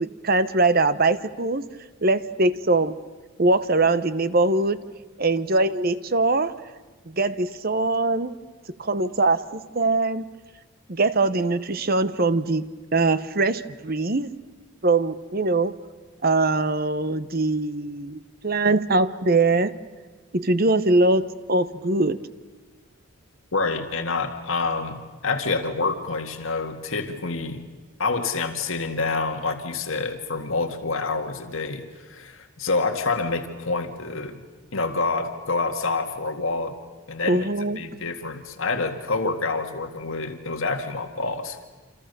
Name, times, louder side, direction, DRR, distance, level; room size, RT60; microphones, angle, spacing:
voice 1, 0.0-1.6 2.0-2.9 3.4-4.8 5.2-6.5 7.1-8.3 8.8-10.2 10.9-14.3 14.8-15.8 16.2-19.7 20.3-22.2 37.2-37.8, right 2 dB, 45° right, 13 dB, 1.0 m, -22 dB
voice 2, 23.5-27.6 28.0-34.4 34.7-36.7 37.1-41.6, left 3 dB, 70° left, 6 dB, 2.0 m, -27 dB
28.0 x 27.0 x 6.8 m, 1.3 s
head